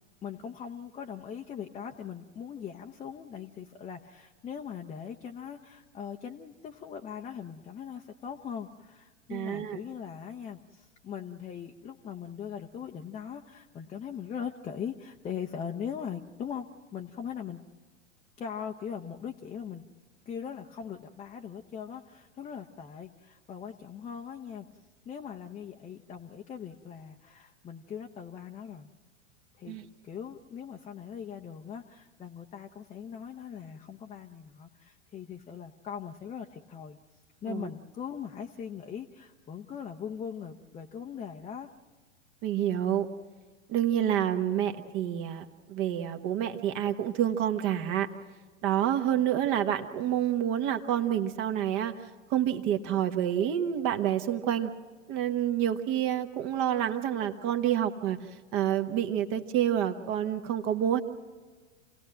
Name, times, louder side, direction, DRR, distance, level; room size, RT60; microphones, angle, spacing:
voice 1, 0.2-17.6 18.4-19.8 20.3-24.7 25.0-28.9 29.5-29.8 30.0-37.0 37.4-41.7, left 7 dB, 20° left, 2 dB, 0.8 m, -40 dB
voice 2, 9.3-9.8 29.7-29.8 37.5-37.7 42.4-43.1 43.7-48.1 48.6-51.9 52.3-54.7 55.1-58.2 58.5-61.0, right 10 dB, 35° right, 7 dB, 1.2 m, -28 dB
27.5 x 17.5 x 7.6 m, 1.4 s
figure-of-eight pair, 95°, 36 cm